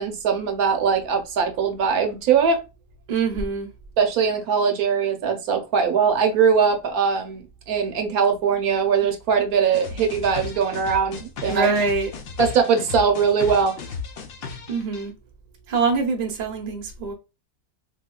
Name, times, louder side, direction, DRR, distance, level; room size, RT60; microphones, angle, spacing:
voice 1, 0.0-2.6 4.0-11.7 12.4-13.8, right 6 dB, 70° right, 1.1 m, -21 dB
voice 2, 3.1-3.7 11.5-12.1 14.7-15.1 15.7-17.1, right 4 dB, 45° right, 0.5 m, -24 dB
sound 1, 9.7-15.0, left 5 dB, 80° left, 0.5 m, -35 dB
3.4 x 2.8 x 2.2 m
omnidirectional pair, 1.7 m